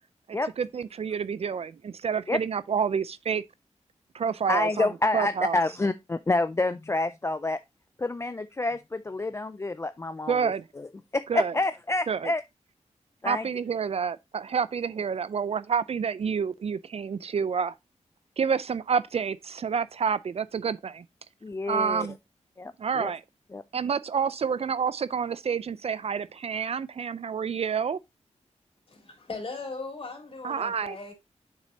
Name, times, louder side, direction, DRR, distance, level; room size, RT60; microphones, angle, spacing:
voice 1, 0.3-3.4 4.1-4.9 5.1-5.6 10.3-10.6 11.3-11.5 12.1-12.3 13.2-17.7 18.4-21.0 21.7-22.2 22.8-23.2 23.7-28.0 30.4-31.0, right 6 dB, 55° right, 0.4 m, -28 dB
voice 2, 4.5-7.6 8.0-10.9 11.1-12.4 13.2-13.5 21.4-22.1 22.6-23.1 23.5-23.6, left 2 dB, 25° left, 0.3 m, -28 dB
voice 3, 28.9-31.1, left 3 dB, 50° left, 3.1 m, -38 dB
7.4 x 6.1 x 2.7 m
wide cardioid pair, 105°, 12 cm